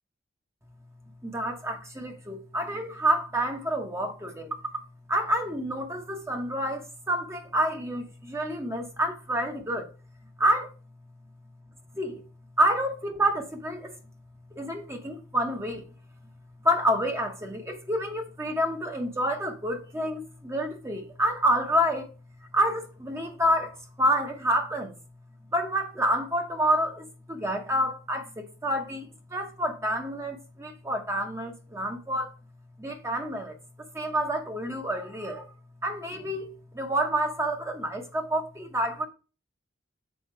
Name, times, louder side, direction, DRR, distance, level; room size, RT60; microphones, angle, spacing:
voice 1, 1.2-4.6 5.1-9.9 10.4-10.7 11.9-12.2 12.6-13.9 14.5-15.9 16.6-22.1 22.5-24.9 25.5-32.3 32.8-33.5 33.9-35.5 35.8-36.5 36.7-39.1, right 1 dB, 15° right, 0.8 m, -28 dB
6.4 x 4.2 x 4.5 m
head